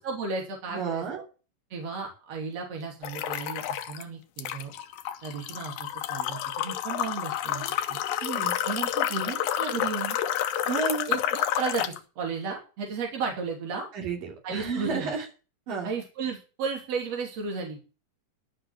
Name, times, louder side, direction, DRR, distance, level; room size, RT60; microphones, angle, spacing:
voice 1, 0.0-1.1 1.7-4.7 5.2-7.6 7.9-8.0 8.6-10.2 11.1-13.9 14.4-15.1 15.8-17.8, right 5 dB, 50° right, 1 dB, 4.0 m, -34 dB
voice 2, 0.7-1.2 8.2-8.5 10.7-11.1 13.9-15.3 15.7-15.9, right 4 dB, 80° right, -1 dB, 4.6 m, -31 dB
sound 1, 3.0-4.0 4.4-12.0, left 11 dB, 90° left, 2.6 m, -29 dB
12.5 x 6.1 x 8.2 m, 0.35 s
omnidirectional pair, 3.8 m